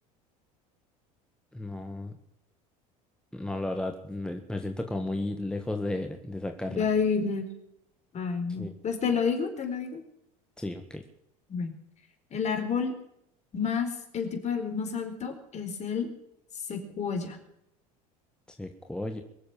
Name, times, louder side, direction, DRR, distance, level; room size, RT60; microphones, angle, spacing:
voice 1, 1.5-2.2 3.3-6.8 8.6-8.7 10.6-11.0 18.5-19.2, left 2 dB, 5° left, 5 dB, 1.7 m, -34 dB
voice 2, 6.8-7.5 8.1-10.0 11.5-11.7 12.3-12.9 13.5-16.1 16.7-17.4, left 6 dB, 40° left, 6 dB, 4.3 m, -29 dB
23.0 x 7.8 x 7.3 m, 0.79 s
supercardioid pair, 90°, 18 cm